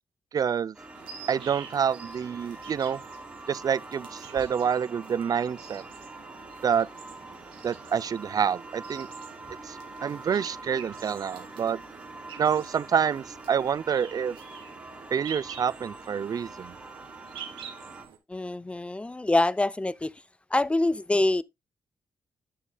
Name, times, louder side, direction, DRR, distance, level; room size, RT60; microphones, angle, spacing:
voice 1, 0.3-0.7 1.3-3.0 3.5-5.8 6.6-6.9 7.6-9.1 9.7-11.8 12.4-14.4 15.1-16.8, right 7 dB, 45° right, 0.4 m, -27 dB
sound 1, 0.7-18.1, right 2 dB, 10° right, 3.0 m, -45 dB
sound 2, 0.9-18.2, right 7 dB, 90° right, 1.7 m, -47 dB
voice 2, 18.3-20.1 20.5-21.4, left 2 dB, 15° left, 0.4 m, -25 dB
11.0 x 6.3 x 2.2 m
cardioid pair, 80°, 9 cm